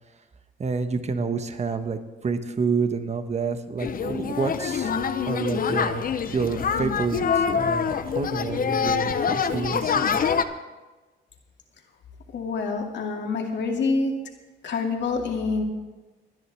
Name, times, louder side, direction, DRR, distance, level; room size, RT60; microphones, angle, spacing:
voice 1, 0.6-4.9 5.2-6.0 6.3-10.2, right 5 dB, 35° right, 8 dB, 1.2 m, -28 dB
sound 1, 3.8-10.4, left 6 dB, 45° left, 0.8 m, -25 dB
voice 2, 12.3-14.1 14.6-15.6, left 4 dB, 65° left, 2 dB, 2.4 m, -26 dB
24.0 x 10.0 x 3.5 m, 1.2 s
cardioid pair, 90°, 20 cm